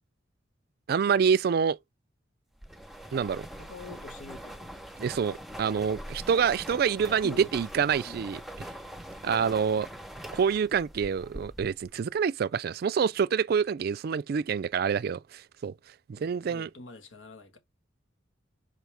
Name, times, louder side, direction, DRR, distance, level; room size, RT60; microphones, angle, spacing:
voice 1, 0.9-1.8 3.1-3.5 5.0-8.4 9.2-9.9 10.3-15.7 16.1-16.7, right 6 dB, 50° right, 0.3 m, -27 dB
sound 1, 2.6-11.9, equal, ahead, 0.8 m, -43 dB
voice 2, 3.6-4.7 7.2-7.5 8.0-8.2 9.3-9.6 16.1-17.6, left 3 dB, 90° left, 1.5 m, -46 dB
6.1 x 4.7 x 3.4 m
head